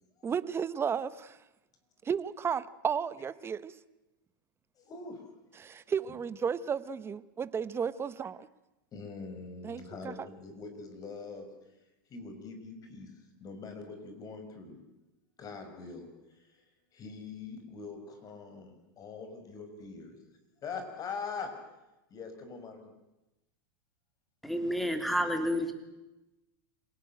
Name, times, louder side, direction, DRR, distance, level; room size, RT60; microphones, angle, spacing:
voice 1, 0.2-1.4 2.0-3.7 5.6-8.5 9.6-10.1, right 7 dB, 20° right, 16 dB, 1.1 m, -33 dB
voice 2, 4.8-5.2 5.7-5.8 6.1-6.2 8.9-11.5 12.1-13.1 13.4-14.8 15.4-16.1 16.3-16.5 16.9-20.2 20.6-21.5 22.1-22.9, left 4 dB, 30° left, 6 dB, 5.8 m, -43 dB
voice 3, 24.4-25.7, equal, ahead, 7 dB, 3.2 m, -30 dB
26.5 x 18.0 x 9.0 m, 0.98 s
hypercardioid pair, 115°, 11 cm